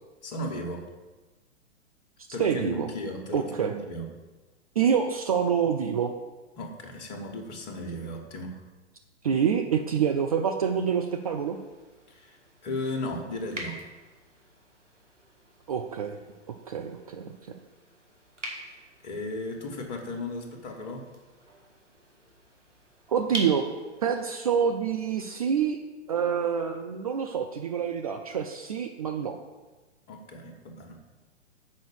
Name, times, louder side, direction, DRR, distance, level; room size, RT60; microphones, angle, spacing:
voice 1, 0.2-0.8 2.3-4.1 6.6-8.6 12.1-13.8 18.6-21.0 30.1-31.0, left 1 dB, 35° left, 3 dB, 1.3 m, -36 dB
voice 2, 2.4-2.9 3.3-3.7 4.8-6.1 9.2-11.6 15.7-16.2 16.5-17.3 23.1-23.7 24.0-25.8 26.1-29.4, right 7 dB, 30° right, 4 dB, 0.4 m, -27 dB
sound 1, 10.6-24.1, right 1 dB, 90° right, 1.8 m, -45 dB
6.4 x 5.2 x 6.8 m, 1.2 s
figure-of-eight pair, 115°, 36 cm